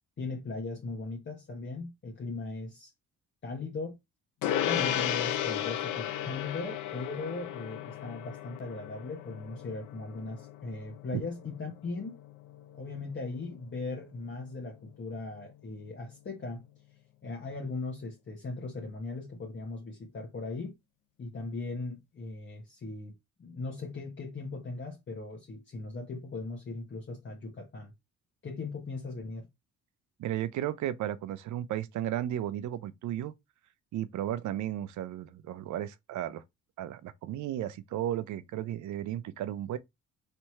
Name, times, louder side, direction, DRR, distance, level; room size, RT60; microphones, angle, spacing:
voice 1, 0.2-2.9 3.4-4.0 4.6-12.2 12.7-16.6 17.2-20.7 21.2-27.9 28.4-29.5, left 3 dB, 40° left, 1.2 m, -38 dB
Gong, 4.4-14.1, left 11 dB, 85° left, 0.7 m, -35 dB
voice 2, 30.2-33.3 33.9-36.4 36.8-39.8, right 12 dB, 75° right, 0.6 m, -34 dB
3.3 x 3.0 x 4.4 m
cardioid pair, 90°, 30 cm